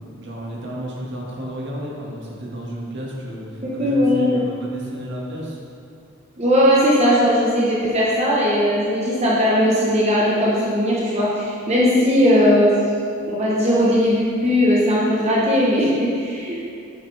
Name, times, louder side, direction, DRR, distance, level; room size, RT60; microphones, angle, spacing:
voice 1, 0.0-5.6, equal, 60° right, -4 dB, 2.0 m, -32 dB
voice 2, 3.8-4.4 6.4-12.7 13.3-16.6, equal, 30° right, -6 dB, 1.2 m, -18 dB
10.5 x 8.1 x 3.5 m, 2.4 s
head